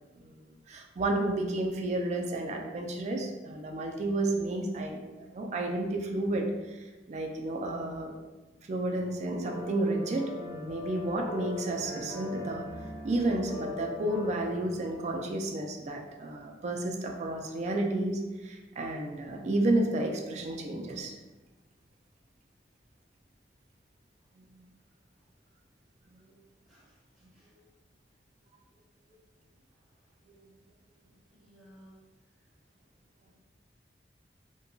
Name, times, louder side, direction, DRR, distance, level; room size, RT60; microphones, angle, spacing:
voice 1, 0.7-8.1 8.7-12.7 13.0-21.1 24.4-24.7 26.1-26.3, right 2 dB, 40° right, 2 dB, 0.3 m, -31 dB
sound 1, 9.5-15.3, left 2 dB, 75° left, 0.8 m, -41 dB
voice 2, 26.6-27.5 29.7-29.9 31.3-32.0, equal, ahead, -9 dB, 0.7 m, -58 dB
2.7 x 2.2 x 2.5 m, 1.2 s
head